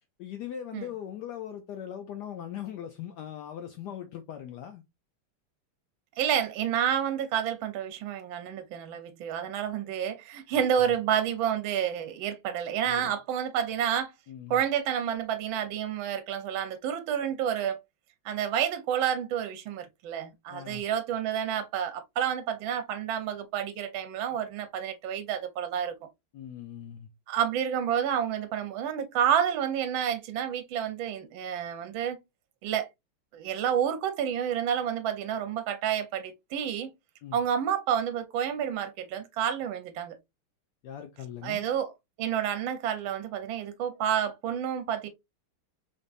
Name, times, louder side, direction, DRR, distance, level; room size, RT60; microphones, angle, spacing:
voice 1, 0.2-4.8 10.5-11.0 12.9-13.1 14.3-14.6 20.5-20.8 26.3-27.1 37.2-37.4 40.8-41.6, left 10 dB, 85° left, 0.9 m, -40 dB
voice 2, 6.2-14.1 14.5-17.8 18.2-25.9 27.3-32.2 32.6-32.9 33.3-36.9 37.3-40.2 41.4-41.9 42.2-45.1, right 9 dB, 70° right, 1.4 m, -29 dB
3.8 x 3.5 x 2.4 m
omnidirectional pair, 2.3 m